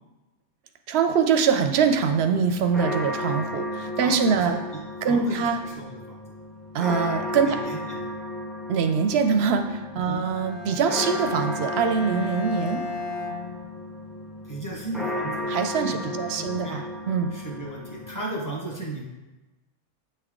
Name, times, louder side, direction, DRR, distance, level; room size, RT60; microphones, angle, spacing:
voice 1, 0.9-4.6 5.0-5.6 6.7-7.6 8.7-12.8 15.5-17.3, right 6 dB, 65° right, 6 dB, 0.7 m, -23 dB
sound 1, 1.6-18.2, left 1 dB, ahead, 0.4 m, -34 dB
voice 2, 4.0-4.8 5.1-6.2 7.4-8.0 10.0-10.2 14.5-15.5 15.8-16.9 17.3-19.0, right 1 dB, 15° left, -3 dB, 1.1 m, -35 dB
Bowed string instrument, 10.1-14.2, left 2 dB, 65° left, 1.1 m, -35 dB
8.5 x 3.4 x 3.6 m, 1.1 s
omnidirectional pair, 1.3 m